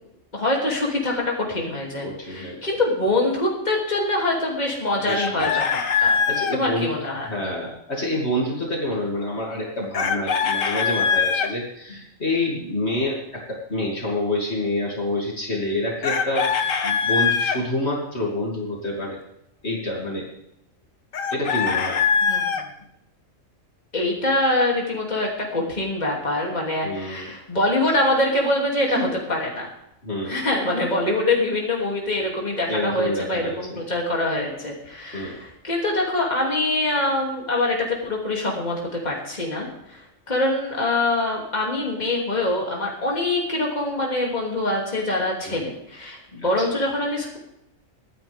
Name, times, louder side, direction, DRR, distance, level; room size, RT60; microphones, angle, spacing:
voice 1, 0.3-5.6 6.0-6.2 6.5-7.3 22.2-22.6 23.9-29.7 30.2-40.0 40.3-47.4, left 2 dB, 30° left, -2 dB, 3.0 m, -24 dB
voice 2, 2.0-2.6 5.1-5.5 5.9-6.9 7.3-19.2 19.6-20.3 21.3-22.0 26.8-27.3 28.9-29.1 30.0-30.4 32.7-33.8 35.1-35.4 45.4-45.6 46.4-46.6, left 1 dB, 55° left, -3 dB, 3.0 m, -28 dB
Chicken rooster, 5.1-6.6 9.9-11.5 16.0-17.6 21.1-22.6, left 6 dB, 75° left, 1.4 m, -22 dB
24.5 x 9.8 x 3.6 m, 0.81 s
omnidirectional pair, 1.4 m